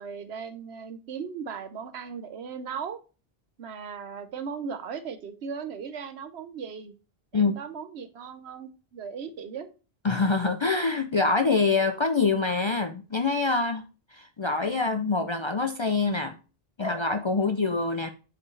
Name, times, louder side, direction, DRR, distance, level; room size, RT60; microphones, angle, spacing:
voice 1, 0.0-3.0 3.6-6.9 7.3-9.7 17.5-17.6, right 6 dB, 90° right, 10 dB, 1.1 m, -37 dB
voice 2, 10.0-13.8 14.1-16.4 16.8-18.1, left 4 dB, 45° left, 8 dB, 0.4 m, -25 dB
7.4 x 4.5 x 3.1 m, 0.33 s
omnidirectional pair, 1.0 m